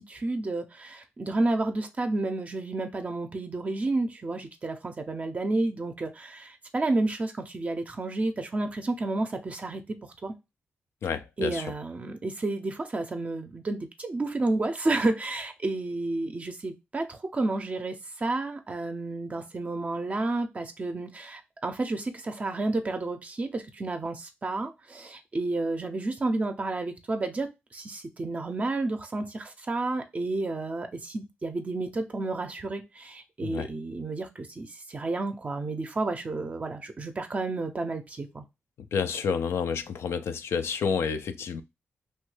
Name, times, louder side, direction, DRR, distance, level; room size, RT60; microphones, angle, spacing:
voice 1, 0.1-9.8 10.2-10.3 11.4-38.4, right 2 dB, 35° right, 0.5 m, -31 dB
voice 2, 11.0-11.6 33.4-33.7 38.9-41.6, left 6 dB, 85° left, 0.4 m, -29 dB
3.1 x 2.2 x 3.2 m
cardioid pair, 100°, 4 cm